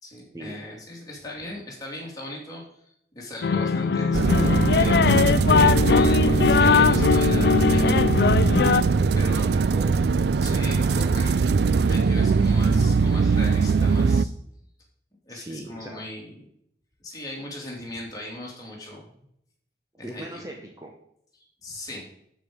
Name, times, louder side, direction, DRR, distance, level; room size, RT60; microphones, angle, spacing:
voice 1, 0.0-2.6 3.1-5.0 5.2-8.1 8.3-8.8 9.1-9.5 10.4-11.3 11.8-14.3 15.3-16.3 17.0-19.1 20.0-20.4 21.4-22.1, left 1 dB, 20° left, -2 dB, 2.7 m, -38 dB
sound 1, 3.4-8.8, left 5 dB, 65° left, 0.4 m, -20 dB
sound 2, 4.1-14.2, right 4 dB, 70° right, 0.4 m, -21 dB
voice 2, 9.0-10.1 10.5-11.4 15.3-16.0 20.0-20.9, right 1 dB, 20° right, 1 dB, 1.0 m, -40 dB
12.0 x 5.0 x 5.2 m, 0.71 s
head